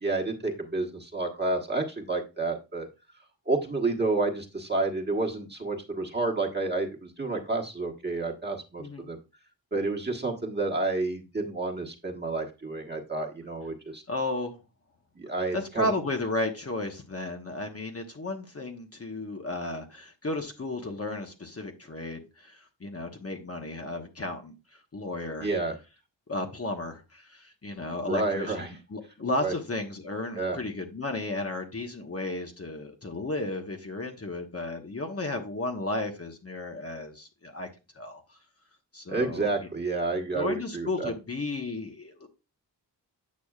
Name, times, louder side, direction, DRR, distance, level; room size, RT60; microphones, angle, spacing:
voice 1, 0.0-2.9 3.5-9.2 9.7-14.0 15.1-15.9 25.4-25.7 28.0-28.7 29.4-29.5 30.4-30.6 39.1-41.1, right 3 dB, 25° right, 1.4 m, -30 dB
voice 2, 8.8-9.1 14.1-14.6 15.5-24.5 24.9-25.5 26.3-37.7 38.0-38.2 38.9-39.7 40.3-42.3, left 2 dB, 30° left, 1.1 m, -34 dB
8.5 x 6.0 x 2.4 m
cardioid pair, 75°, 44 cm